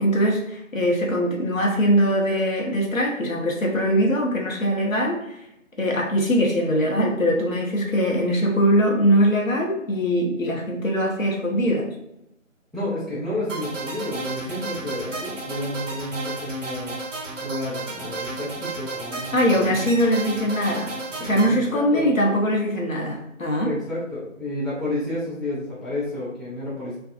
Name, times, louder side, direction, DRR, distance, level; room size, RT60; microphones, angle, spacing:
voice 1, 0.0-5.4 5.8-11.9 19.3-20.9 21.2-23.7, equal, 75° left, 0 dB, 0.9 m, -22 dB
voice 2, 12.7-17.0 17.4-19.8 21.5-22.1 23.6-27.0, left 1 dB, ahead, -10 dB, 0.5 m, -30 dB
sound 1, 13.5-21.5, right 3 dB, 65° right, 0.6 m, -33 dB
2.5 x 2.2 x 2.5 m, 0.83 s
figure-of-eight pair, 175°, 40 cm